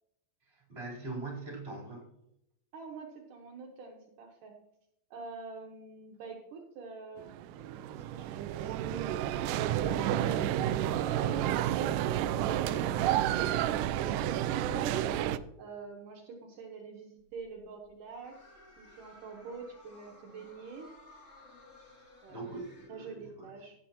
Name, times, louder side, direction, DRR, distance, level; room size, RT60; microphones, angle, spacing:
voice 1, 0.4-2.1 22.3-23.5, right 3 dB, 15° right, -3 dB, 4.0 m, -42 dB
voice 2, 2.7-4.6 5.1-8.3 8.6-9.3 9.8-15.2 15.6-18.4 18.8-20.9 22.2-22.6 22.9-23.7, right 4 dB, 70° right, 0 dB, 2.6 m, -45 dB
sound 1, 7.2-15.4, right 12 dB, 85° right, 1.8 m, -30 dB
sound 2, 17.2-22.9, left 1 dB, 25° left, 1.9 m, -57 dB
16.5 x 7.5 x 2.9 m, 0.79 s
omnidirectional pair, 4.2 m